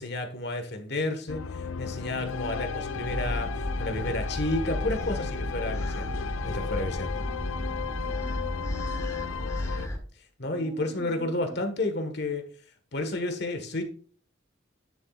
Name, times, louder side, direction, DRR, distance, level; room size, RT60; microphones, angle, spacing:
voice 1, 0.0-3.5 3.8-7.3 9.6-10.0 10.4-12.4 12.9-13.8, left 2 dB, 55° left, 6 dB, 1.6 m, -31 dB
sound 1, 1.3-9.9, left 6 dB, 90° left, 0.5 m, -35 dB
voice 2, 2.4-3.8 7.1-9.2 10.5-11.6, right 1 dB, 15° right, 7 dB, 0.6 m, -47 dB
sound 2, 2.9-10.0, equal, 15° left, 1.5 m, -34 dB
10.5 x 7.3 x 2.5 m, 0.41 s
head